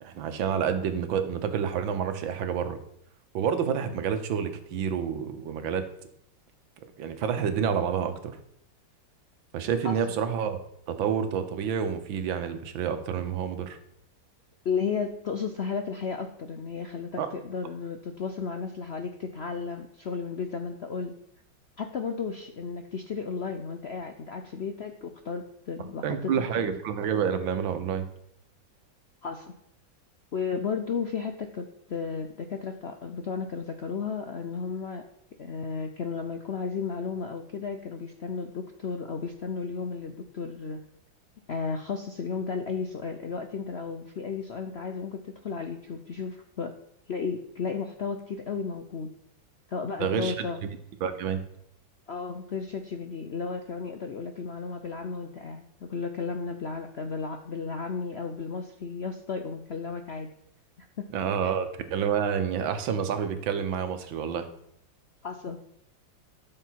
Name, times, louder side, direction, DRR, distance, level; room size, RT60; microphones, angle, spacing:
voice 1, 0.0-2.8 3.3-5.8 6.8-8.4 9.5-10.6 10.9-13.8 17.2-17.3 26.0-28.1 50.0-50.7 51.0-51.4 61.1-64.5, right 7 dB, 90° right, 9 dB, 1.8 m, -28 dB
voice 2, 14.6-21.1 21.8-26.6 29.2-29.5 30.3-35.1 35.4-40.8 41.5-46.8 47.1-49.1 49.7-50.6 52.1-60.3 60.8-61.1 61.4-61.5 65.2-65.6, left 5 dB, 65° left, 6 dB, 0.6 m, -34 dB
13.0 x 6.5 x 4.6 m, 0.74 s
omnidirectional pair, 2.1 m